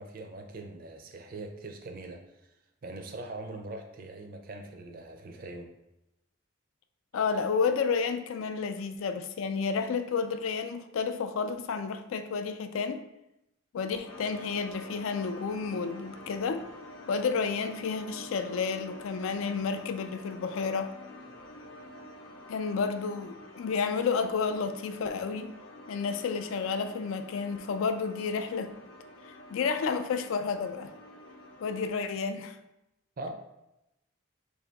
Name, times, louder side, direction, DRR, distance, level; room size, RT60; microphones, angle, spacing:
voice 1, 0.0-2.5 2.8-5.7 33.2-33.3, right 2 dB, 45° right, 5 dB, 0.4 m, -42 dB
voice 2, 7.1-13.0 13.7-16.6 17.1-20.9 22.5-25.5 25.9-28.7 29.5-30.9 31.6-32.6, left 5 dB, 80° left, 8 dB, 0.3 m, -31 dB
sound 1, 14.1-31.9, left 1 dB, 60° left, 0.7 m, -48 dB
3.3 x 2.6 x 3.9 m, 0.88 s
head